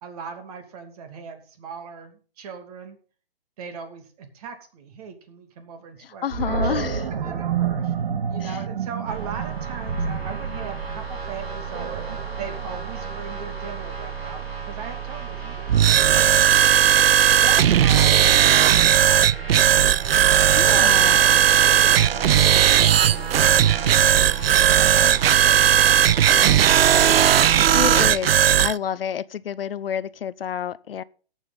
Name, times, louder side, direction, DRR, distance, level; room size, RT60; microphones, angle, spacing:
voice 1, 0.0-3.0 3.6-8.0 8.3-12.0 12.4-17.0 17.4-19.7 20.2-22.7 23.3-23.7 24.8-27.4, right 5 dB, 40° right, 2.7 m, -39 dB
voice 2, 6.2-7.1 8.4-8.6 20.5-21.2 27.7-28.3 28.6-31.0, left 9 dB, 70° left, 0.6 m, -29 dB
Animal, 6.3-13.4, right 6 dB, 55° right, 1.6 m, -29 dB
sound 1, 9.1-28.1, right 7 dB, 90° right, 4.2 m, -32 dB
sound 2, 15.7-28.7, right 10 dB, 75° right, 0.5 m, -16 dB
18.0 x 7.4 x 4.1 m
hypercardioid pair, 145°, 30 cm